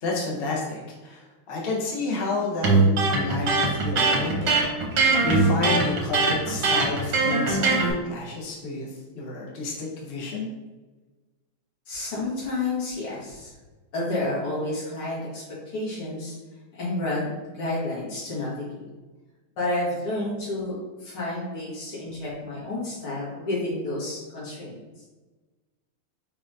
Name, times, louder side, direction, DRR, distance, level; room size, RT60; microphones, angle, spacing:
voice 1, 0.0-4.5 4.9-8.9 9.1-10.5, left 3 dB, 45° left, -3 dB, 0.7 m, -30 dB
Electric guitar, 2.6-7.9, right 3 dB, 60° right, 1.3 m, -21 dB
voice 2, 11.9-13.5 13.9-16.4 16.7-17.3 17.5-18.8 19.6-24.8, left 2 dB, 90° left, -7 dB, 2.5 m, -30 dB
4.8 x 3.7 x 2.7 m, 1.2 s
omnidirectional pair, 2.3 m